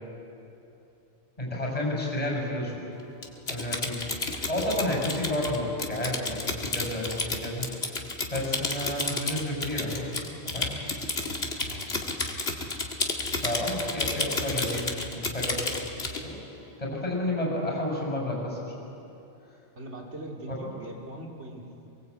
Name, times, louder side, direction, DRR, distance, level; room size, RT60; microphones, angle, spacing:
voice 1, 1.4-2.7 3.5-4.0 4.3-7.7 8.3-10.7 13.4-18.6 20.5-20.6, left 1 dB, 35° left, -1 dB, 6.5 m, -31 dB
Typing, 3.2-16.2, left 3 dB, 65° left, 2.2 m, -31 dB
voice 2, 19.7-21.9, right 1 dB, 80° right, -1 dB, 3.3 m, -41 dB
23.5 x 22.0 x 8.4 m, 2.8 s
omnidirectional pair, 1.1 m